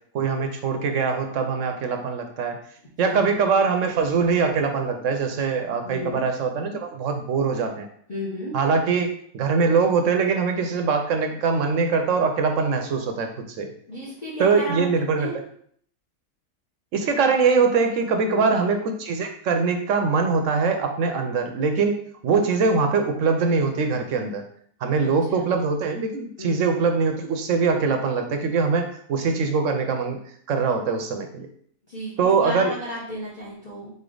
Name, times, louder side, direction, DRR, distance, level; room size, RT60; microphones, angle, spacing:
voice 1, 0.1-2.6 3.0-7.9 8.5-9.1 9.3-13.7 14.4-15.3 16.9-24.5 24.8-30.2 30.5-31.5 32.2-32.7, right 5 dB, 70° right, 5 dB, 0.9 m, -22 dB
voice 2, 5.8-6.2 8.1-8.6 13.9-14.9 15.1-15.3 18.2-18.6 25.0-25.7 26.4-26.6 31.9-33.9, equal, 35° left, -7 dB, 1.0 m, -33 dB
3.8 x 3.4 x 3.8 m, 0.62 s
omnidirectional pair, 1.4 m